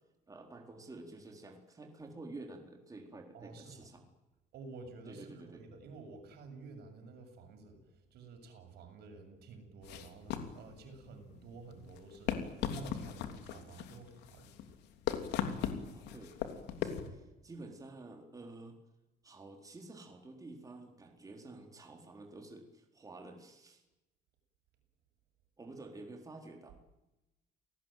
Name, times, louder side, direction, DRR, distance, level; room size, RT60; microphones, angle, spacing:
voice 1, 0.3-4.0 5.1-5.6 15.9-16.4 16.8-18.8 19.2-23.8 25.6-26.8, right 2 dB, 20° right, 2 dB, 4.2 m, -50 dB
voice 2, 3.3-3.9 4.5-14.5, right 4 dB, 75° right, 5 dB, 7.5 m, -51 dB
sound 1, 9.8-17.1, left 9 dB, 85° left, 3.3 m, -39 dB
29.5 x 19.0 x 9.2 m, 1.0 s
cardioid pair, 110°, 17 cm